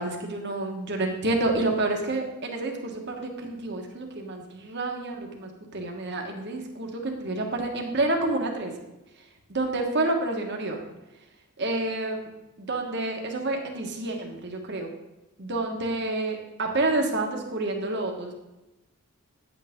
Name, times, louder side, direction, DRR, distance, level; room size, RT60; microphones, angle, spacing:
voice 1, 0.0-8.7 9.5-10.8 11.6-12.3 12.6-14.9 15.4-18.3, right 2 dB, 50° right, 2 dB, 1.5 m, -29 dB
9.9 x 8.6 x 3.7 m, 1.0 s
head